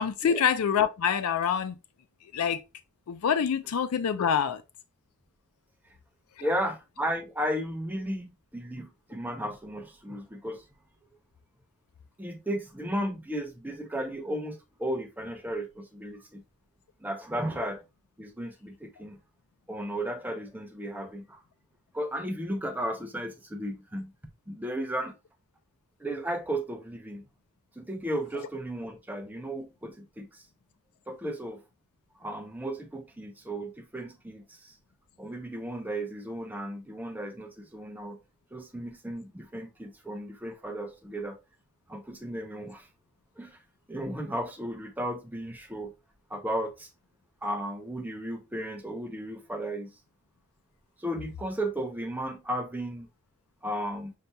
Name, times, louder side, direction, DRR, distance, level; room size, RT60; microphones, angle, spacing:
voice 1, 0.0-1.7 2.3-2.6 3.1-4.6, left 7 dB, 85° left, 0.4 m, -26 dB
voice 2, 6.4-10.6 12.2-16.4 17.0-17.8 18.2-19.2 19.7-21.4 21.9-24.1 24.5-25.1 26.0-27.2 27.8-30.5 31.1-31.6 32.1-34.8 35.2-38.2 38.5-41.4 41.9-42.9 43.4-43.6 43.9-45.9 46.3-46.9 47.4-49.9 51.0-53.1 53.6-54.1, right 1 dB, 10° right, 0.5 m, -34 dB
6.5 x 2.7 x 2.2 m
head